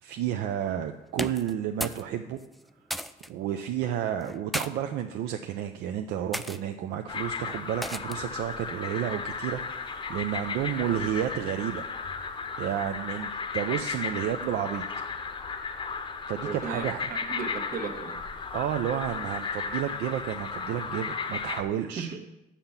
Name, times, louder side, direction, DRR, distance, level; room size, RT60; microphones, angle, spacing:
voice 1, 0.0-2.4 3.3-11.8 12.6-14.8 16.3-17.1 18.5-22.1, right 10 dB, 75° right, 6 dB, 0.5 m, -31 dB
sound 1, 1.1-2.1 2.3-3.3 4.2-4.7 5.5-5.7 6.3-6.6 7.8-8.3, equal, ahead, 0.3 m, -34 dB
sound 2, 7.1-21.6, left 5 dB, 30° left, 0.7 m, -35 dB
voice 2, 16.4-18.2 22.0-22.3, right 5 dB, 55° right, 4 dB, 1.3 m, -36 dB
6.8 x 5.8 x 7.2 m, 0.96 s
cardioid pair, 110°, 17 cm